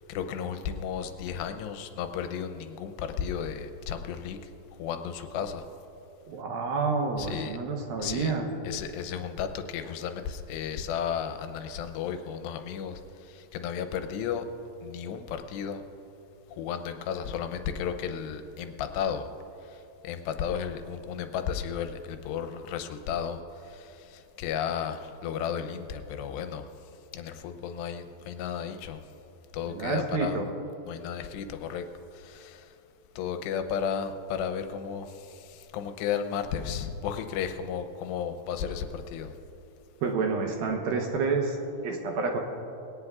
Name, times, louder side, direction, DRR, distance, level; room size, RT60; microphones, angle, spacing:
voice 1, 0.1-4.4 4.8-5.6 7.2-7.6 8.0-8.4 8.6-14.5 14.8-15.8 16.5-19.3 19.7-26.7 27.1-29.0 29.5-30.4 30.9-31.9 32.1-32.7 33.2-39.3, left 8 dB, 85° left, 8 dB, 2.9 m, -34 dB
voice 2, 6.3-8.5 29.7-30.5 40.0-41.6 41.8-42.4, right 4 dB, 70° right, 2 dB, 2.4 m, -29 dB
21.0 x 18.0 x 2.4 m, 2.7 s
omnidirectional pair, 4.9 m